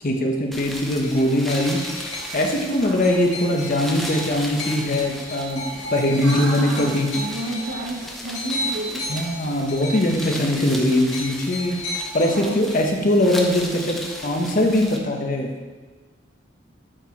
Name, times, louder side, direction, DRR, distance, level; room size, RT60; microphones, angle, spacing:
voice 1, 0.0-1.8 2.3-5.6 5.9-7.1 8.4-8.6 9.1-11.8 12.1-15.5, left 1 dB, 45° left, 2 dB, 1.0 m, -21 dB
sound 1, 0.5-15.0, equal, ahead, 0.6 m, -36 dB
sound 2, 1.0-13.7 14.1-15.1, left 1 dB, 75° left, 2.4 m, -35 dB
voice 2, 2.8-3.1 6.2-9.2 12.3-12.8, right 1 dB, 85° right, -3 dB, 0.9 m, -32 dB
8.9 x 4.4 x 4.5 m, 1.4 s
head